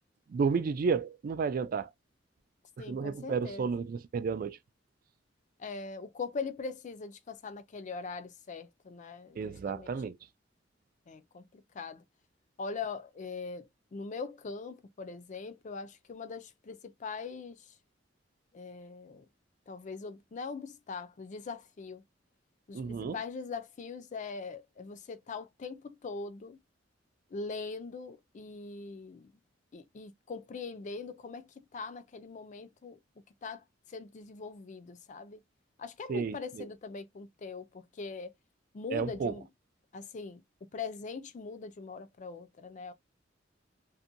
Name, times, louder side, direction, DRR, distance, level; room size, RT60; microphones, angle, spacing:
voice 1, 0.3-1.9 2.9-4.6 9.4-10.2 22.7-23.2 36.1-36.4 38.9-39.3, right 5 dB, 50° right, 0.3 m, -31 dB
voice 2, 2.8-3.7 5.6-9.9 11.1-12.0 12.6-17.7 18.5-19.3 19.7-22.0 22.7-26.6 27.3-29.3 29.7-33.0 33.4-35.4 35.8-38.3 38.7-39.5 39.9-42.9, left 4 dB, 40° left, 0.4 m, -41 dB
2.7 x 2.2 x 2.5 m
head